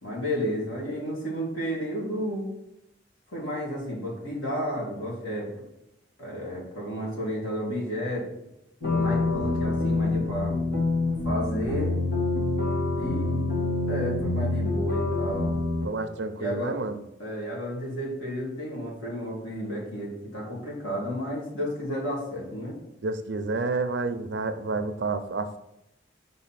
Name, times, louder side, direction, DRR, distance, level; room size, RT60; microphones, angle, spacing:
voice 1, 0.0-2.5 3.3-5.5 6.2-8.3 8.9-10.5 11.2-11.9 12.9-13.5 13.8-15.6 16.4-16.7 17.2-22.8, equal, 90° left, -4 dB, 2.7 m, -32 dB
sound 1, 8.8-15.8, left 2 dB, 65° left, 2.0 m, -26 dB
voice 2, 15.8-17.0 23.0-25.6, right 3 dB, 70° right, 9 dB, 0.6 m, -29 dB
5.5 x 4.0 x 5.7 m, 0.88 s
head